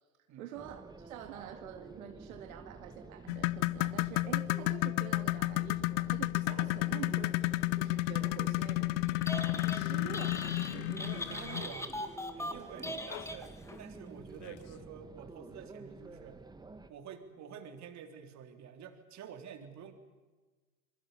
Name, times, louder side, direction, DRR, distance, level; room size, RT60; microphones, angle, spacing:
voice 1, 0.4-11.7 12.8-13.0, right 10 dB, 75° right, 5 dB, 2.3 m, -47 dB
sound 1, 0.5-16.9, right 3 dB, 10° right, 1.6 m, -51 dB
sound 2, 3.3-11.7 13.1-13.2 13.7-13.8 14.5-14.6, left 21 dB, 60° left, 0.9 m, -32 dB
Telephone, 9.1-9.8 10.1-13.8, left 1 dB, 5° left, 2.2 m, -40 dB
voice 2, 11.1-11.9 12.3-16.4 16.9-19.9, right 7 dB, 40° right, 6 dB, 3.6 m, -49 dB
26.5 x 22.5 x 7.2 m, 1.3 s
hypercardioid pair, 100°, 42 cm